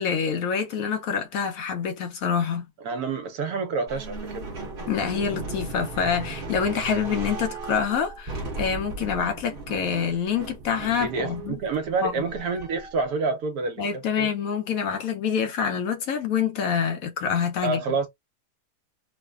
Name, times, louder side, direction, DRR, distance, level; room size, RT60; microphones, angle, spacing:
voice 1, 0.0-2.7 4.9-11.6 12.0-12.2 13.8-17.8, left 7 dB, 70° left, 0.9 m, -26 dB
voice 2, 2.8-4.6 11.0-14.3 17.6-18.1, right 4 dB, 70° right, 1.2 m, -28 dB
sound 1, 3.9-13.0, right 3 dB, 40° right, 0.9 m, -36 dB
3.2 x 2.1 x 2.2 m
omnidirectional pair, 1.7 m